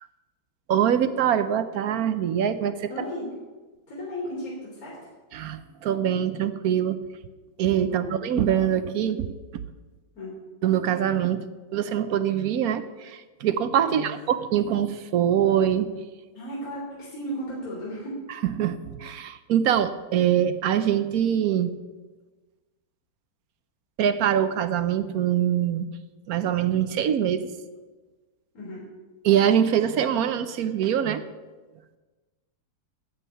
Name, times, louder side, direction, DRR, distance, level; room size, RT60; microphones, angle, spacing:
voice 1, 0.7-2.9 5.3-7.0 7.6-9.4 10.6-11.4 11.7-15.9 18.4-21.7 24.0-25.9 26.3-27.5 29.2-31.2, right 9 dB, 65° right, 11 dB, 0.9 m, -24 dB
voice 2, 2.9-3.3 3.9-5.1 7.9-8.1 10.2-10.3 13.9-14.1 16.3-18.2 28.5-28.8, equal, 50° left, -5 dB, 3.7 m, -35 dB
9.9 x 7.4 x 9.4 m, 1.3 s
omnidirectional pair, 2.1 m